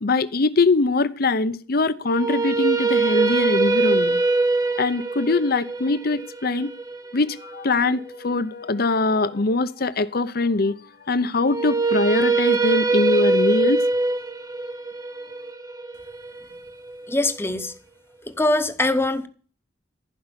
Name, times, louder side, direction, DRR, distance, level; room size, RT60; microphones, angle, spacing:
voice 1, 0.0-4.2 4.8-6.7 7.1-10.7 11.1-13.8, left 3 dB, 55° left, 0.8 m, -22 dB
sound 1, 2.0-8.2 11.4-17.5, right 3 dB, 20° right, 0.9 m, -23 dB
voice 2, 17.1-17.7 18.4-19.3, left 1 dB, 15° left, 1.0 m, -22 dB
15.0 x 5.6 x 9.8 m
head